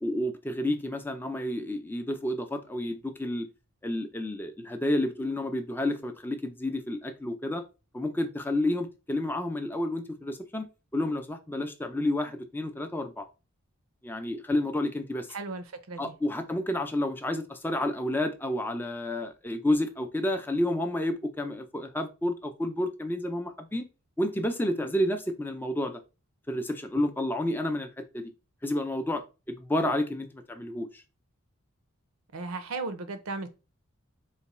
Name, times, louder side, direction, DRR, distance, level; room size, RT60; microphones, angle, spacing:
voice 1, 0.0-3.5 3.8-7.6 7.9-10.7 10.9-13.3 14.0-15.3 16.0-23.9 24.2-26.0 26.5-28.3 28.6-31.0, left 1 dB, 10° left, 0.4 m, -30 dB
voice 2, 15.3-16.1 32.3-33.5, right 3 dB, 80° right, 0.7 m, -36 dB
4.0 x 2.2 x 4.2 m
head